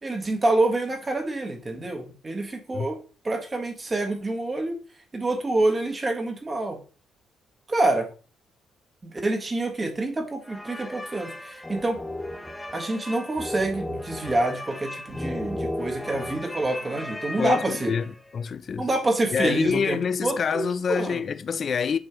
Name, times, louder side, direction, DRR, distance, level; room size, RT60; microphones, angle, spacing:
voice 1, 0.0-3.0 3.2-4.8 5.1-6.8 7.7-8.1 9.0-12.0 12.7-17.9 18.8-20.6 20.9-21.2, right 2 dB, 25° right, 1.6 m, -27 dB
sound 1, 10.4-18.3, left 1 dB, 10° left, 0.9 m, -35 dB
voice 2, 17.4-18.9 19.3-22.0, left 6 dB, 50° left, 0.4 m, -26 dB
7.2 x 4.4 x 3.1 m
cardioid pair, 90°, 0 cm